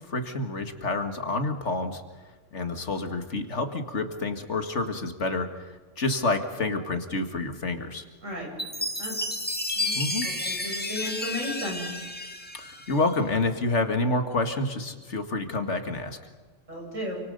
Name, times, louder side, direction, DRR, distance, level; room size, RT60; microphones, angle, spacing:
voice 1, 0.1-2.0 2.5-8.0 9.9-10.3 12.5-16.2, left 2 dB, 65° left, 6 dB, 2.3 m, -28 dB
voice 2, 8.2-9.1 9.7-10.0 10.2-11.8 16.7-17.2, left 1 dB, 80° right, -1 dB, 8.3 m, -35 dB
Chime, 8.6-13.2, left 1 dB, 10° left, 1.9 m, -31 dB
28.5 x 25.5 x 5.4 m, 1.3 s
omnidirectional pair, 1.3 m